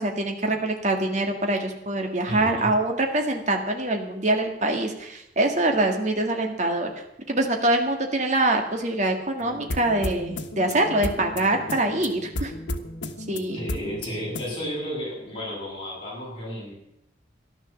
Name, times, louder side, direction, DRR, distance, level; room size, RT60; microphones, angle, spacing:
voice 1, 0.0-6.9 7.3-12.5 13.3-13.6, right 2 dB, 40° right, 3 dB, 2.0 m, -24 dB
voice 2, 2.3-2.7 13.5-16.7, equal, 30° left, -5 dB, 7.9 m, -33 dB
sound 1, 9.4-14.5, left 1 dB, 85° left, 1.3 m, -34 dB
13.5 x 11.5 x 7.2 m, 0.82 s
head